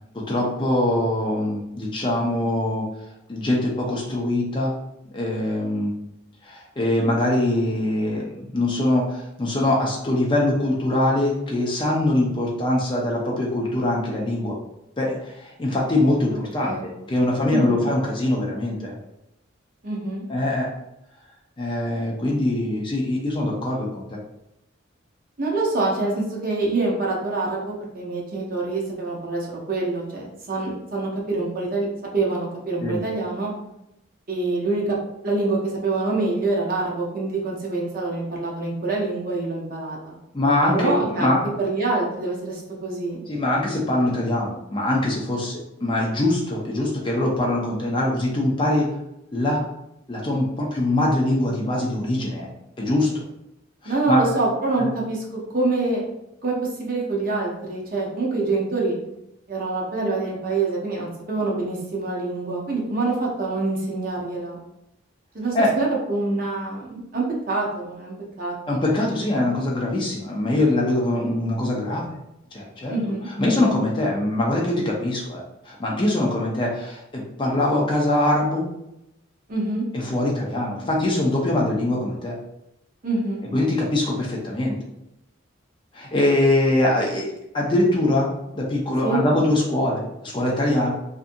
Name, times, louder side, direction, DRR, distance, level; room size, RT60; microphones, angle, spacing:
voice 1, 0.1-2.9 3.3-4.7 5.1-5.9 6.4-8.2 8.5-14.6 15.0-19.0 20.3-20.7 21.6-24.2 32.8-33.0 40.3-41.4 43.3-48.9 49.3-49.6 50.1-52.5 52.8-53.2 53.8-54.2 54.8-54.9 65.5-65.7 68.7-72.1 72.5-72.9 73.4-78.7 79.9-82.4 83.5-84.8 85.9-87.3 87.5-90.9, left 1 dB, 25° left, -2 dB, 0.4 m, -23 dB
voice 2, 16.6-16.9 17.5-17.9 19.8-20.2 25.4-31.9 32.1-33.5 34.3-35.0 35.2-40.2 40.7-43.2 53.8-55.2 55.5-56.0 56.4-59.0 59.5-64.6 65.3-68.5 72.9-73.3 79.5-79.9 83.0-83.4 89.0-89.2, right 3 dB, 45° right, -2 dB, 0.7 m, -25 dB
2.6 x 2.5 x 2.5 m, 0.85 s
head